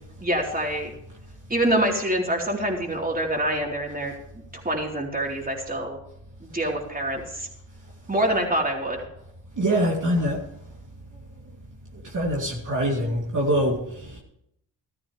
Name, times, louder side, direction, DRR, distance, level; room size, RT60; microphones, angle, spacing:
voice 1, 0.2-0.9 1.5-4.1 4.5-6.0 6.4-7.5 8.1-9.0, right 1 dB, 20° right, 0 dB, 3.9 m, -26 dB
voice 2, 9.6-10.4 12.1-14.2, equal, 45° right, -2 dB, 2.9 m, -24 dB
14.5 x 13.5 x 3.3 m, 0.78 s
cardioid pair, 70°, 44 cm